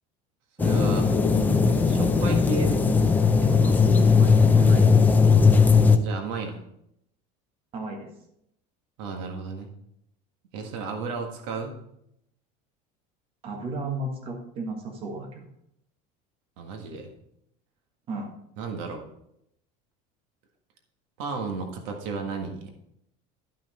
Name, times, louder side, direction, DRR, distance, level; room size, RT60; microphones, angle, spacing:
sound 1, 0.6-6.0, left 5 dB, 10° left, 0.5 m, -18 dB
voice 1, 0.6-1.1 1.8-2.9 3.4-3.9 6.0-6.6 9.0-9.7 10.5-11.8 16.6-17.1 18.6-19.0 21.2-22.7, right 4 dB, 80° right, 3 dB, 1.7 m, -33 dB
voice 2, 4.0-4.9 7.7-8.1 13.4-15.5 18.1-18.3, right 2 dB, 35° right, 2 dB, 1.6 m, -34 dB
12.0 x 6.0 x 4.3 m, 0.76 s
cardioid pair, 170°, 17 cm